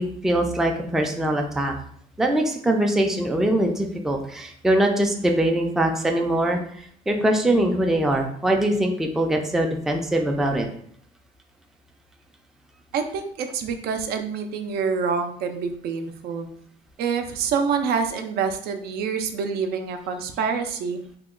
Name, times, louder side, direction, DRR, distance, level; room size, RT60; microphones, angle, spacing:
voice 1, 0.0-1.7 2.2-6.6 7.1-10.7, right 1 dB, ahead, 2 dB, 0.3 m, -22 dB
voice 2, 12.9-16.5 17.0-21.0, right 6 dB, 70° right, 6 dB, 0.4 m, -26 dB
2.9 x 2.1 x 3.6 m, 0.63 s
cardioid pair, 110°, 17 cm